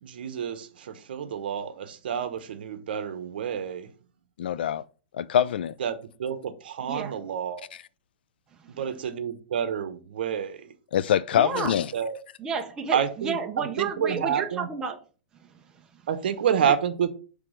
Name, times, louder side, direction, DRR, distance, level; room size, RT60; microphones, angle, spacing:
voice 1, 0.0-3.9 5.8-7.7 8.7-10.7 11.7-12.2 12.9-14.7 16.1-17.1, right 8 dB, 60° right, 0.9 m, -29 dB
voice 2, 4.4-4.8 5.1-5.7 10.9-11.9, left 9 dB, 65° left, 0.4 m, -24 dB
voice 3, 6.8-7.2 8.6-8.8 11.3-11.7 12.4-15.0 15.4-16.0 16.6-16.7, right 5 dB, 10° right, 0.6 m, -32 dB
6.0 x 3.4 x 5.1 m
hypercardioid pair, 170°, 6 cm